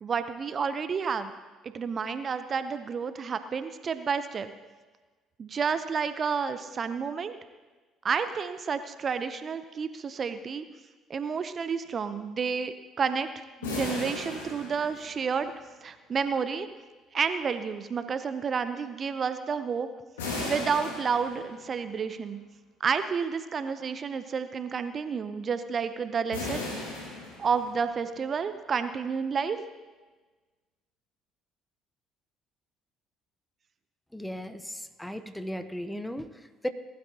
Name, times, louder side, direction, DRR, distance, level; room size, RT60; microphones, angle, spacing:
voice 1, 0.0-1.3 1.6-4.5 5.4-7.3 8.0-10.6 11.1-15.5 15.8-16.7 17.1-19.9 20.5-22.4 22.8-26.6 27.4-29.6, right 6 dB, 45° right, 11 dB, 0.7 m, -30 dB
sound 1, 13.6-15.5 20.2-21.8 26.3-28.0, left 2 dB, 85° left, 2.3 m, -36 dB
voice 2, 34.1-36.7, equal, 5° left, 10 dB, 0.9 m, -36 dB
19.5 x 12.0 x 2.9 m, 1.3 s
hypercardioid pair, 55°, 0 cm